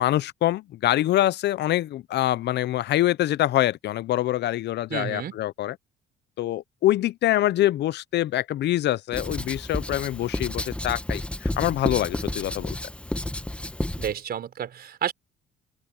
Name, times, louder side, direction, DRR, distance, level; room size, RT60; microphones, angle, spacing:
voice 1, 0.0-5.7 6.4-12.8, left 14 dB, 60° left, 0.6 m, -25 dB
voice 2, 4.9-5.4 14.0-15.1, right 9 dB, 50° right, 5.0 m, -30 dB
Writing, 9.1-14.1, left 1 dB, 5° left, 1.1 m, -31 dB
open air
cardioid pair, 100°, 20 cm